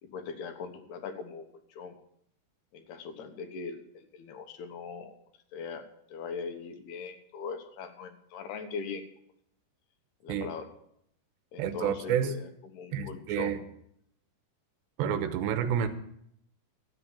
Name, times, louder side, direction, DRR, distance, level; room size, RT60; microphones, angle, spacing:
voice 1, 0.0-1.5 1.7-2.0 2.7-5.1 5.5-9.0 10.2-10.7 11.5-13.5, left 5 dB, 70° left, 6 dB, 3.0 m, -40 dB
voice 2, 11.6-12.3 12.9-13.6 15.0-15.9, right 8 dB, 80° right, 9 dB, 3.1 m, -29 dB
13.0 x 9.2 x 7.2 m, 0.72 s
omnidirectional pair, 5.1 m